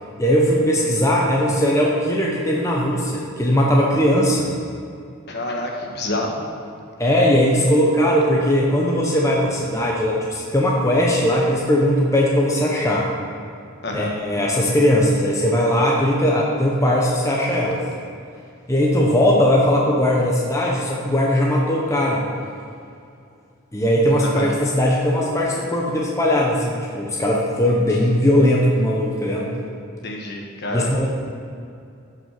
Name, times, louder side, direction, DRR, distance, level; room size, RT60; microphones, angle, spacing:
voice 1, 0.2-4.5 7.0-13.1 13.9-17.8 18.7-22.2 23.7-29.5 30.7-31.1, equal, 15° left, -3 dB, 1.0 m, -19 dB
voice 2, 5.3-6.4 13.8-14.1 24.2-24.5 30.0-31.1, left 2 dB, 50° left, 0 dB, 1.4 m, -28 dB
12.5 x 5.8 x 5.9 m, 2.5 s
head